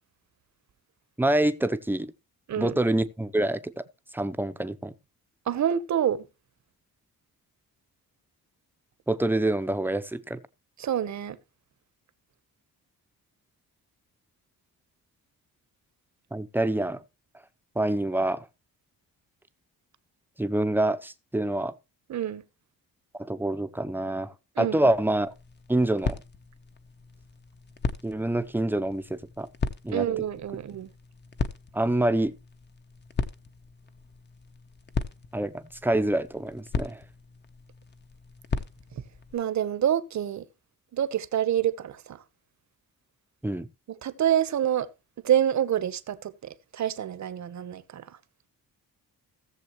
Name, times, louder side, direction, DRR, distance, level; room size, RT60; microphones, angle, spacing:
voice 1, 1.2-2.1 2.6-3.8 4.1-4.9 9.1-10.4 16.3-17.0 17.8-18.5 20.4-21.7 23.2-25.3 25.7-26.2 28.0-29.5 29.8-30.0 31.7-32.3 35.3-37.0 43.4-43.7, right 1 dB, 5° right, 0.6 m, -26 dB
voice 2, 5.5-6.2 10.8-11.4 22.1-22.4 24.6-24.8 29.9-30.9 39.3-40.4 40.9-42.2 44.0-44.9 45.2-48.0, right 10 dB, 50° right, 0.9 m, -27 dB
sound 1, 24.8-39.3, left 4 dB, 30° left, 0.8 m, -37 dB
17.0 x 7.2 x 3.0 m
wide cardioid pair, 165°, 36 cm